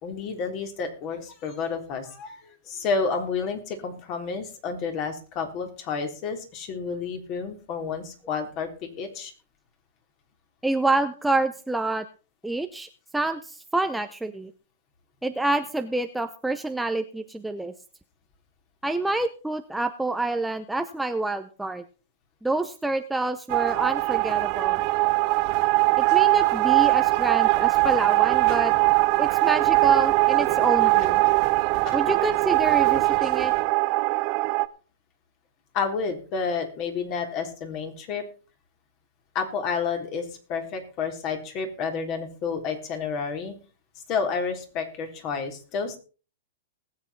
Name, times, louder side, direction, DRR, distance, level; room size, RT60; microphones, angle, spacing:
voice 1, 0.0-9.3 31.8-32.0 35.7-38.2 39.4-43.6 44.1-46.0, left 5 dB, 35° left, 5 dB, 3.6 m, -30 dB
voice 2, 10.6-12.0 12.4-12.9 13.1-14.5 15.2-17.7 18.8-21.8 22.4-24.8 26.0-28.7 29.2-31.2 31.9-33.5, right 2 dB, 5° right, 8 dB, 0.7 m, -27 dB
sound 1, 23.5-34.7, right 23 dB, 40° right, 0.8 m, -21 dB
20.0 x 8.1 x 4.3 m, 0.36 s
hypercardioid pair, 135°, 0 cm